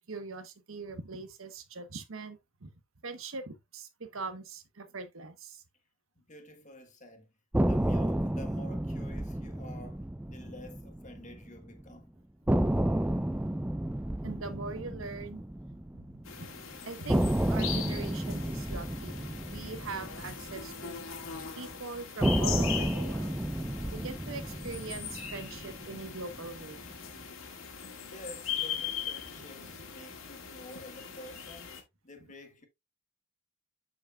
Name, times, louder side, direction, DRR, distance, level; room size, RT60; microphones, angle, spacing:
voice 1, 0.1-2.7 3.0-5.6 14.2-15.4 15.9-16.5 16.8-17.2 17.5-21.1 21.6-23.4 23.9-26.8 29.6-29.7, right 3 dB, 75° right, 1.0 m, -42 dB
voice 2, 6.1-7.3 7.7-12.2 28.0-32.7, left 1 dB, 35° left, 1.6 m, -50 dB
sound 1, 7.5-11.6 11.9-12.0 12.5-16.5 17.1-21.4 22.2-26.6, right 1 dB, 5° right, 0.3 m, -31 dB
sound 2, 16.2-31.8, left 7 dB, 80° left, 1.9 m, -40 dB
7.6 x 7.0 x 2.2 m
head